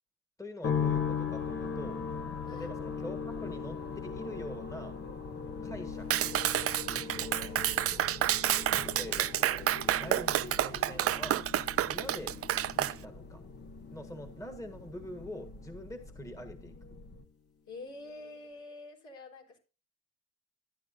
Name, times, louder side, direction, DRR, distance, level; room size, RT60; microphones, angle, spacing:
voice 1, 0.4-2.0 2.5-5.0 5.6-6.4 6.7-7.6 9.0-11.4 11.9-12.4 12.8-13.4 13.9-16.7, left 1 dB, 10° left, 6 dB, 1.6 m, -45 dB
sound 1, 0.6-15.9 16.2-17.0, left 7 dB, 50° left, 1.7 m, -39 dB
sound 2, 0.8-17.2, left 3 dB, 35° left, 1.1 m, -46 dB
Clapping, 6.1-12.9, right 12 dB, 50° right, 0.4 m, -29 dB
voice 2, 8.5-9.4 17.7-19.6, left 2 dB, 70° left, 0 dB, 4.0 m, -48 dB
13.5 x 9.7 x 2.6 m, 0.33 s
cardioid pair, 90°, 30 cm